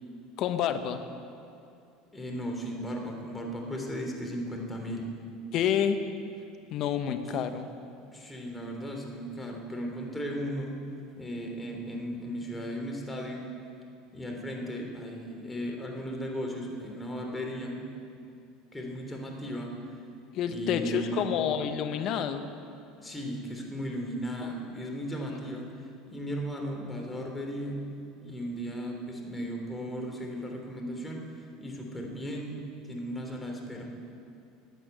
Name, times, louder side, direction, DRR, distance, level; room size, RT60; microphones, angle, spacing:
voice 1, 0.4-1.0 5.5-6.0 6.7-7.7 20.3-22.4 24.4-24.5, left 9 dB, 55° left, 9 dB, 1.0 m, -28 dB
voice 2, 2.1-5.1 8.1-13.5 14.1-17.8 18.7-19.8 20.5-21.4 23.0-27.8 28.2-31.2 31.6-32.6 32.9-33.8, equal, 15° left, 0 dB, 3.2 m, -36 dB
13.0 x 8.4 x 9.3 m, 2.5 s
hypercardioid pair, 80°, 0 cm